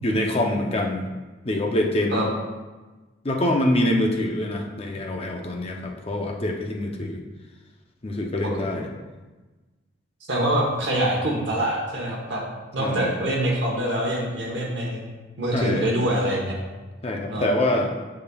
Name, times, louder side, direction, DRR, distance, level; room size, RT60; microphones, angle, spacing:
voice 1, 0.0-1.0 1.4-2.3 3.2-7.2 8.0-8.9 12.8-13.1 15.5-15.9 17.0-17.9, left 1 dB, 30° left, 2 dB, 0.6 m, -25 dB
voice 2, 10.3-12.4 12.7-15.1 15.4-16.6 17.3-17.4, right 1 dB, 60° right, -3 dB, 1.0 m, -24 dB
9.4 x 5.1 x 2.3 m, 1.2 s
head